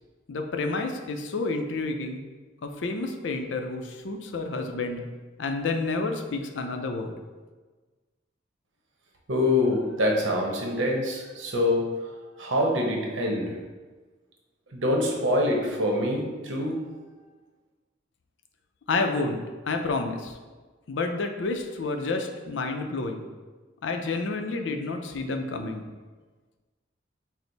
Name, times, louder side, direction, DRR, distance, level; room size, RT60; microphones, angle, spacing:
voice 1, 0.3-2.2 2.6-5.0 5.4-7.1 18.9-19.4 19.7-20.4 20.9-23.3 23.8-25.8, left 3 dB, 75° left, 5 dB, 0.5 m, -29 dB
voice 2, 9.3-11.8 12.4-13.6 14.7-16.8, left 1 dB, 85° right, 0 dB, 0.8 m, -25 dB
6.1 x 2.0 x 3.9 m, 1.3 s
head